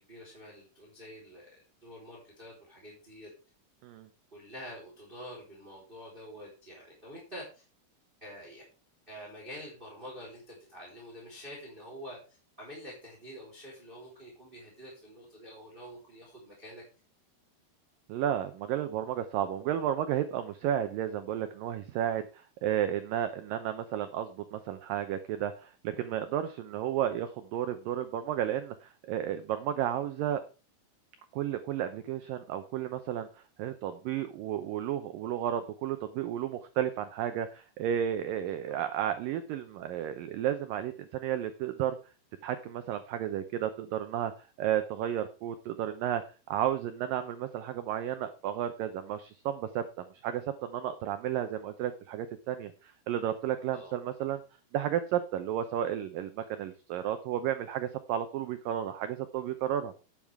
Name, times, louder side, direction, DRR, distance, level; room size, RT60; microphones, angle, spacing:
voice 1, 0.0-3.3 4.3-7.6 8.2-8.6 9.1-12.2 12.6-16.8 53.7-53.9, equal, 10° right, -3 dB, 3.9 m, -47 dB
voice 2, 18.1-30.4 31.3-42.0 42.4-46.2 46.5-54.4 54.7-59.9, right 10 dB, 85° right, 9 dB, 2.0 m, -32 dB
12.5 x 9.0 x 3.5 m, 0.34 s
omnidirectional pair, 5.0 m